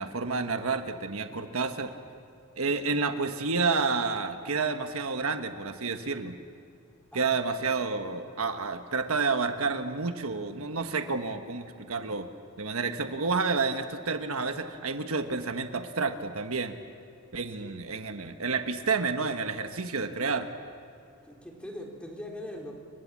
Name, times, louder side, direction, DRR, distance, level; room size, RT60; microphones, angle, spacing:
voice 1, 0.0-1.9 2.6-6.3 7.1-12.3 12.6-16.7 17.3-20.5, right 4 dB, 75° right, 7 dB, 1.4 m, -30 dB
voice 2, 7.1-8.2 17.6-17.7 21.2-22.7, left 1 dB, 5° left, 0 dB, 3.8 m, -42 dB
29.0 x 23.0 x 7.5 m, 2.7 s
head